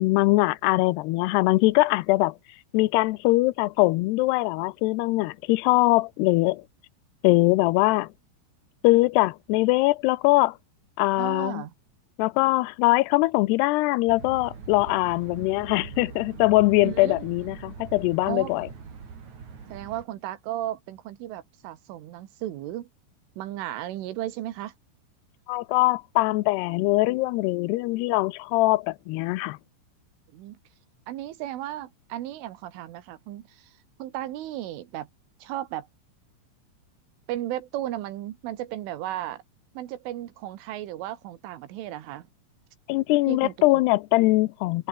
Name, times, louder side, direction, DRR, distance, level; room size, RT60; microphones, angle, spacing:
voice 1, 0.0-2.4 2.7-6.6 7.2-8.1 8.8-10.6 11.0-11.6 12.2-18.7 25.5-29.6 42.9-44.9, left 20 dB, 90° left, 2.3 m, -22 dB
voice 2, 11.2-11.7 16.8-17.3 18.2-18.5 19.7-22.9 23.4-24.7 30.3-30.6 31.1-33.7 34.0-35.1 35.4-35.9 37.3-39.4 39.8-42.3 43.3-43.7, right 13 dB, 85° right, 4.2 m, -35 dB
sound 1, 14.1-20.0, right 5 dB, 40° right, 4.8 m, -42 dB
omnidirectional pair, 5.5 m